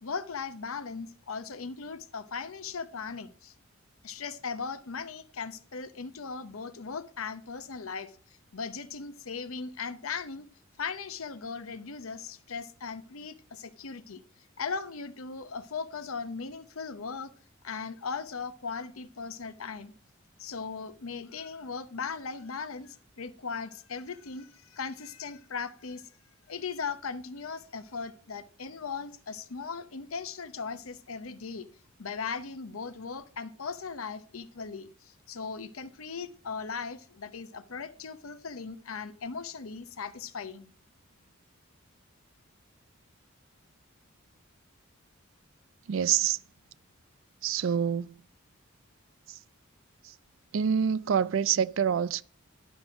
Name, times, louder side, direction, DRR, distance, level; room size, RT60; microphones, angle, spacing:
voice 1, 0.0-3.5 4.0-8.1 8.5-10.5 10.8-14.2 14.6-17.3 17.6-19.9 20.4-26.1 26.5-31.7 32.0-40.7, left 5 dB, 85° left, 0.8 m, -38 dB
voice 2, 45.9-46.4 47.4-48.2 49.3-49.4 50.0-50.1 50.5-52.2, right 8 dB, 65° right, 0.4 m, -26 dB
11.0 x 6.1 x 5.0 m
head